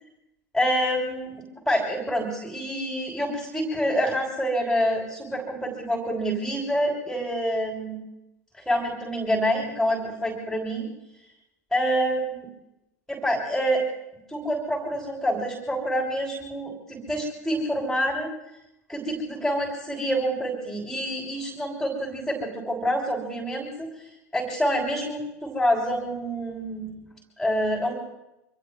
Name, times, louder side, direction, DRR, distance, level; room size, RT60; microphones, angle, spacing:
voice 1, 0.5-8.0 8.7-10.9 11.7-12.5 13.1-13.8 14.3-18.3 18.9-23.9 24.3-27.0 27.4-27.9, equal, ahead, -2 dB, 3.0 m, -27 dB
26.5 x 24.0 x 2.2 m, 0.88 s
figure-of-eight pair, 80°, 9 cm